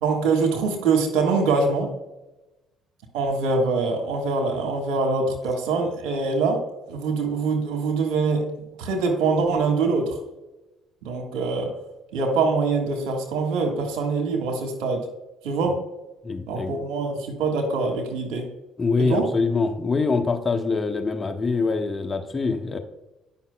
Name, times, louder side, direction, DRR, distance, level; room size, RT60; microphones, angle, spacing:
voice 1, 0.0-1.9 3.1-8.5 8.8-10.2 11.0-11.7 12.1-15.1 15.4-15.8 16.5-18.5 19.0-19.3, right 4 dB, 70° right, 2 dB, 1.4 m, -24 dB
voice 2, 16.2-16.8 18.8-22.8, left 4 dB, 30° left, 6 dB, 0.9 m, -24 dB
9.4 x 5.6 x 2.2 m, 0.99 s
hypercardioid pair, 55°, 0 cm